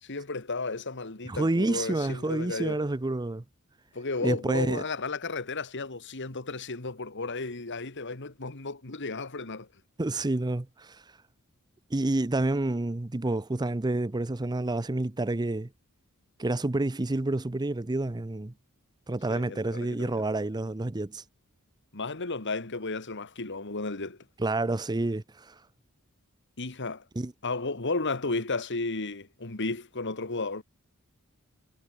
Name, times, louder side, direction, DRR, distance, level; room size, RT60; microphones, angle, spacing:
voice 1, 0.0-2.8 3.9-9.7 19.3-20.2 21.9-24.2 26.6-27.0 27.4-30.6, left 3 dB, 55° left, 2.2 m, -33 dB
voice 2, 1.2-3.4 4.2-4.8 10.0-11.0 11.9-15.7 16.4-18.5 19.1-21.2 24.4-25.6 27.2-27.3, right 2 dB, 20° right, 0.6 m, -29 dB
head